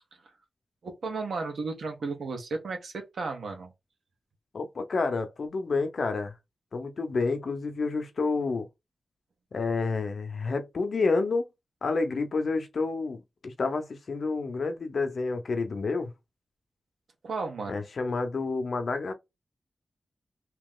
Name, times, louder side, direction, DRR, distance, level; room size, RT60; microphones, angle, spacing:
voice 1, 0.8-3.7 17.2-17.8, right 4 dB, 80° right, 1.2 m, -34 dB
voice 2, 4.5-6.3 6.7-8.7 9.5-11.5 11.8-16.1 17.7-19.1, left 3 dB, 55° left, 0.7 m, -29 dB
3.1 x 2.9 x 3.6 m
wide cardioid pair, 145°, 0 cm